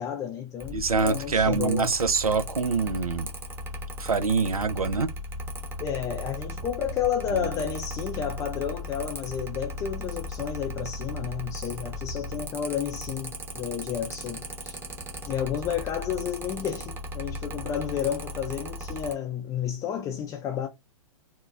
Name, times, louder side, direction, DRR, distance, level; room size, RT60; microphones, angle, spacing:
voice 1, 0.0-2.0 5.8-14.8 15.3-20.7, left 9 dB, 20° left, 0.4 m, -31 dB
Mechanical fan, 0.6-19.1, left 1 dB, 10° right, 0.9 m, -37 dB
voice 2, 0.7-3.3 4.0-5.1 7.3-7.4, right 4 dB, 90° right, 0.6 m, -25 dB
3.8 x 2.2 x 2.4 m
figure-of-eight pair, 115°, 18 cm